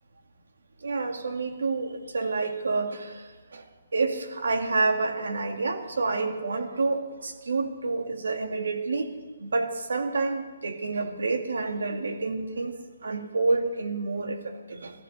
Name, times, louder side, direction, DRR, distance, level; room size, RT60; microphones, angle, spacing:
voice 1, 0.8-3.1 3.9-9.1 9.4-12.7 13.0-14.4 14.8-14.9, right 3 dB, 90° right, 5 dB, 2.1 m, -28 dB
15.5 x 14.5 x 5.5 m, 1.4 s
hypercardioid pair, 170°, 0 cm